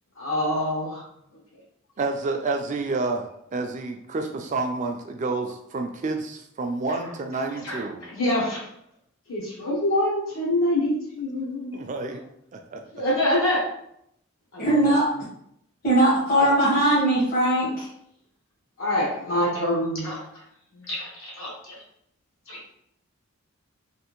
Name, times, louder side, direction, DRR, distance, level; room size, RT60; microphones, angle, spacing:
voice 1, 0.2-1.0 7.6-8.6 9.3-9.4 9.7-11.8 12.9-13.7 14.5-14.9 16.3-16.5 18.8-20.2 20.7-21.8 22.5-22.7, left 1 dB, 70° left, -5 dB, 1.0 m, -26 dB
voice 2, 2.0-8.1 11.7-12.2 12.5-12.8, right 3 dB, 35° right, 4 dB, 0.3 m, -29 dB
voice 3, 14.6-15.1 15.8-17.9, right 1 dB, 45° left, -7 dB, 0.9 m, -20 dB
3.3 x 2.5 x 3.0 m, 0.74 s
head